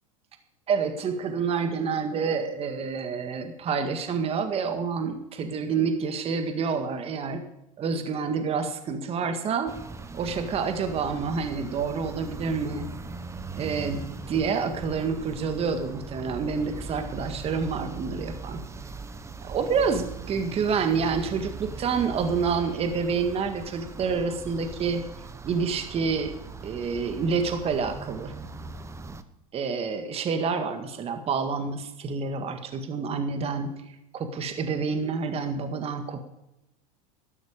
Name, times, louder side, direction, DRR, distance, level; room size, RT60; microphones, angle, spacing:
voice 1, 0.7-7.4 7.8-9.7 10.1-12.9 13.5-18.6 19.4-25.0 25.4-26.3 26.6-28.3 29.5-33.8 34.1-36.2, right 5 dB, 35° right, 7 dB, 1.7 m, -28 dB
sound 1, 9.7-29.2, right 3 dB, 15° right, 1.0 m, -40 dB
12.5 x 12.0 x 5.1 m, 0.88 s
hypercardioid pair, 110°, 19 cm